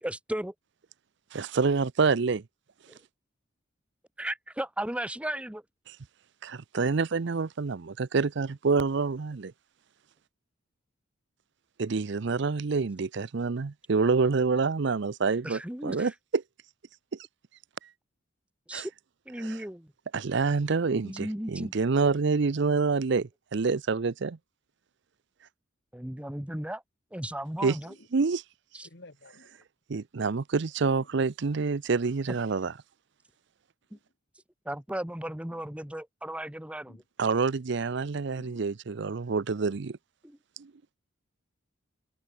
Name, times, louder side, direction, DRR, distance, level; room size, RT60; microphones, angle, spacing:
voice 1, 0.0-0.5 2.9-3.0 4.2-5.6 15.4-16.1 18.7-18.9 19.3-19.9 21.0-21.7 25.9-26.8 27.1-27.9 28.7-28.9 33.9-34.0 34.6-37.0 40.2-40.4, right 1 dB, 5° right, 0.9 m, -35 dB
voice 2, 1.3-2.4 6.4-9.5 11.8-16.4 18.7-18.9 20.1-24.4 27.6-27.8 28.1-28.4 29.9-32.7 37.2-40.0 40.6-40.7, right 4 dB, 60° right, 0.6 m, -27 dB
voice 3, 28.8-29.7 30.8-31.1 33.9-34.0 35.5-35.6 36.9-37.0 38.3-38.7, left 2 dB, 60° left, 2.1 m, -53 dB
head